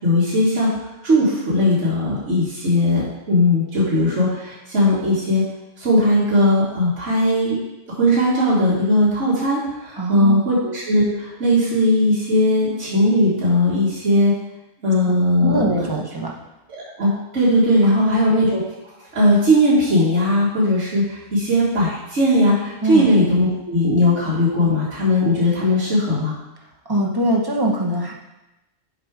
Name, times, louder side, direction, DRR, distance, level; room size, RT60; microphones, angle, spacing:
voice 1, 0.0-0.7 1.0-5.4 5.8-7.6 7.9-14.3 14.8-15.9 16.7-18.6 19.1-26.3, left 1 dB, 70° right, -8 dB, 2.0 m, -18 dB
voice 2, 10.0-10.5 15.4-16.3 17.8-18.2 22.8-23.1 26.9-28.1, right 1 dB, 20° right, -2 dB, 0.8 m, -22 dB
7.3 x 4.8 x 4.7 m, 0.97 s
omnidirectional pair, 1.3 m